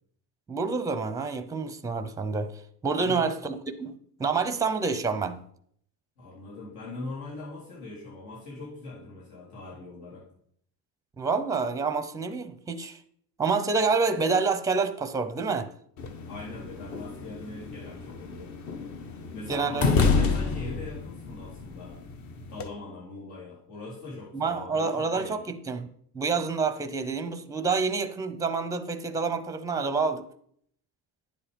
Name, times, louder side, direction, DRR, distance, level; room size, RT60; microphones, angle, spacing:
voice 1, 0.5-2.5 2.8-5.4 11.2-13.0 13.4-15.7 19.5-20.3 24.3-25.4 25.7-25.9 26.1-30.3, right 4 dB, 10° right, 0.6 m, -28 dB
voice 2, 3.0-3.3 6.2-10.3 16.3-18.6 19.3-22.0 22.5-25.4, left 2 dB, 75° left, 3.6 m, -41 dB
sound 1, 16.0-22.7, left 4 dB, 45° left, 1.1 m, -30 dB
10.5 x 7.6 x 5.1 m
cardioid pair, 165°, 38 cm